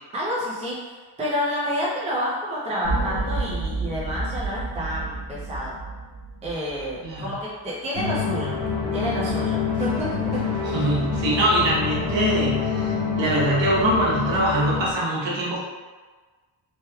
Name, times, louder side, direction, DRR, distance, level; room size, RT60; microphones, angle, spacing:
voice 1, 0.1-0.8 1.2-5.7 6.4-8.6 8.9-10.5 10.8-11.0, equal, 15° right, -7 dB, 0.5 m, -29 dB
sound 1, 2.8-7.2, right 2 dB, 80° left, 0.9 m, -30 dB
sound 2, 7.9-14.9, left 5 dB, 5° left, 1.4 m, -26 dB
voice 2, 10.7-15.6, right 1 dB, 65° right, -6 dB, 1.0 m, -23 dB
3.3 x 3.1 x 2.2 m, 1.4 s
wide cardioid pair, 165°, 49 cm